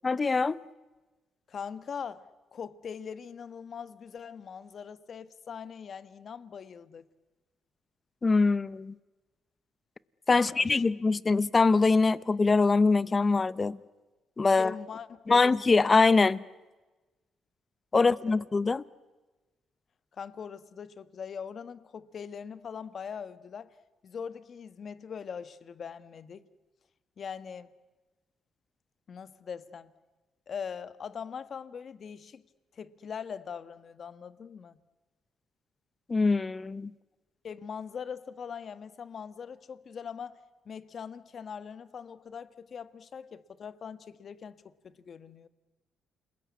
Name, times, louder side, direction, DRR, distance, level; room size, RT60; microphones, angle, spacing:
voice 1, 0.0-0.6 8.2-8.9 10.3-13.8 14.4-14.7 15.3-16.4 17.9-18.8 36.1-36.9, left 4 dB, 30° left, 0.8 m, -23 dB
voice 2, 1.5-7.1 10.3-10.8 14.5-15.5 18.0-18.5 20.1-23.7 24.0-26.5 27.2-27.7 29.1-29.9 30.5-32.4 32.7-34.8 37.4-40.4 40.6-45.5, left 7 dB, 50° left, 1.3 m, -42 dB
29.0 x 20.5 x 9.6 m
cardioid pair, 90°, 0 cm